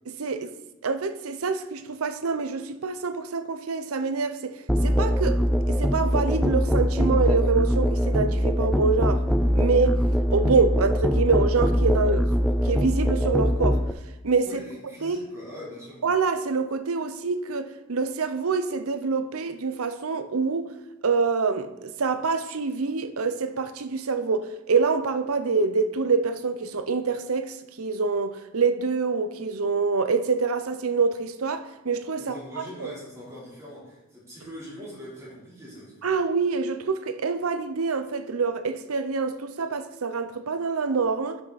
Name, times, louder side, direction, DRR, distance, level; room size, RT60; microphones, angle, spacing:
voice 1, 0.2-0.5 0.8-9.2 9.5-10.0 10.3-12.3 12.6-13.8 14.2-14.6 15.0-15.2 16.0-20.7 21.0-32.3 32.8-32.9 36.0-41.4, right 4 dB, 85° right, 0.7 m, -26 dB
Musical instrument, 4.7-13.9, equal, ahead, 0.3 m, -22 dB
voice 2, 14.4-16.0 32.2-36.0, equal, 15° right, 3.7 m, -42 dB
12.0 x 5.9 x 4.1 m
head